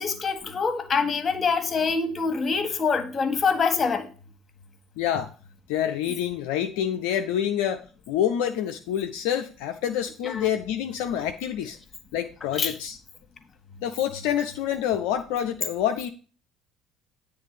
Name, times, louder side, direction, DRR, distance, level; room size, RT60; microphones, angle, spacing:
voice 1, 0.0-4.1 10.2-10.5 12.6-12.7, left 5 dB, 30° left, 8 dB, 1.3 m, -25 dB
voice 2, 5.0-5.3 5.7-11.8 12.1-13.0 13.8-16.1, left 10 dB, 65° left, 5 dB, 0.4 m, -27 dB
8.9 x 3.3 x 6.7 m, 0.37 s
figure-of-eight pair, 60°, 0 cm